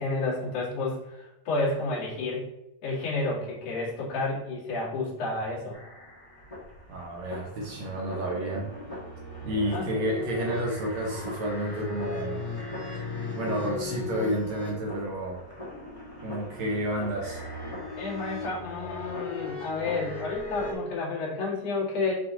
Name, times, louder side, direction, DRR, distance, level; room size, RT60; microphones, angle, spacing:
voice 1, 0.0-2.5 2.8-5.8 9.7-10.1 18.0-22.1, left 3 dB, 45° left, -7 dB, 3.0 m, -31 dB
sound 1, 5.7-20.7, left 2 dB, 20° left, 1.0 m, -37 dB
voice 2, 6.9-8.7 9.4-12.4 13.3-15.4 16.2-17.4, right 1 dB, 70° right, -2 dB, 1.6 m, -30 dB
6.3 x 4.9 x 3.8 m, 0.87 s
omnidirectional pair, 4.5 m